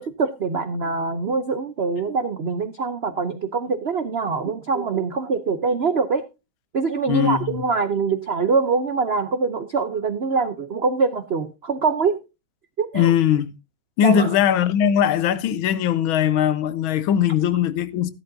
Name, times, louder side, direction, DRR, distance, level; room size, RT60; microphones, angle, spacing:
voice 1, 0.0-6.2 6.7-12.2 12.8-13.1 14.0-14.3, right 4 dB, 90° right, 0.5 m, -24 dB
voice 2, 7.1-7.5 12.9-13.5 14.0-18.1, left 9 dB, 80° left, 1.5 m, -20 dB
13.5 x 11.5 x 2.7 m
omnidirectional pair, 2.3 m